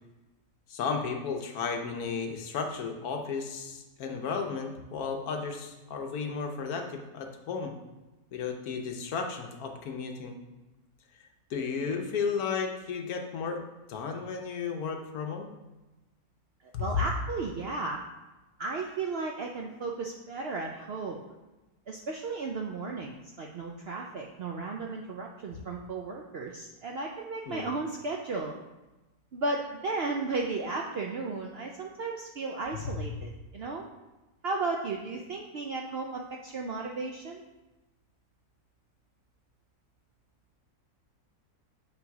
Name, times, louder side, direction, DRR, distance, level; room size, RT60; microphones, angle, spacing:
voice 1, 0.7-7.7 8.3-10.4 11.5-13.6 13.9-15.5 16.7-17.0 27.5-27.7 32.7-33.0, left 5 dB, 75° left, 4 dB, 1.3 m, -33 dB
voice 2, 16.8-18.0 18.6-21.2 21.9-28.6 29.3-33.9 34.4-37.4, right 3 dB, 65° right, 0 dB, 0.6 m, -34 dB
7.3 x 3.3 x 4.6 m, 1.1 s
omnidirectional pair, 1.6 m